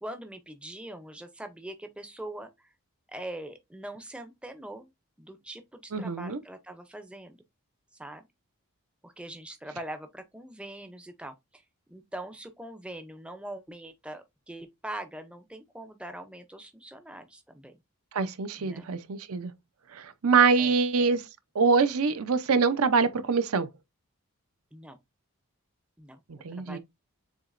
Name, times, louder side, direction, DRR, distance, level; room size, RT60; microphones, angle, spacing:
voice 1, 0.0-2.7 3.1-4.9 5.2-7.4 8.0-8.2 9.0-11.6 11.9-17.7 18.6-18.9 20.6-20.8 24.7-25.0 26.0-26.2 26.5-26.8, right 1 dB, 5° right, 0.4 m, -42 dB
voice 2, 5.9-6.4 18.1-19.5 19.9-21.3 21.5-23.7 26.3-26.8, right 5 dB, 80° right, 0.6 m, -24 dB
7.1 x 2.9 x 2.5 m
head